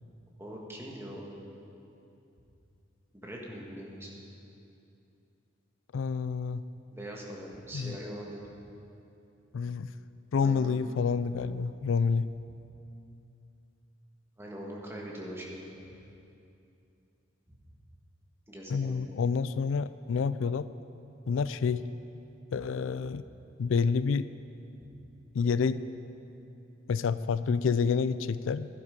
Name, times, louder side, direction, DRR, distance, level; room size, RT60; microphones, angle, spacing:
voice 1, 0.4-1.2 3.1-4.1 6.9-8.4 10.4-10.7 14.4-15.7 18.5-19.0, equal, 15° right, -3 dB, 1.7 m, -42 dB
voice 2, 5.9-6.6 7.7-8.0 9.5-9.9 10.3-12.3 18.7-20.7 21.3-21.8 22.5-23.2 23.6-24.3 25.3-25.8 26.9-28.8, left 5 dB, 90° left, 15 dB, 0.4 m, -28 dB
12.0 x 11.5 x 5.2 m, 2.7 s
head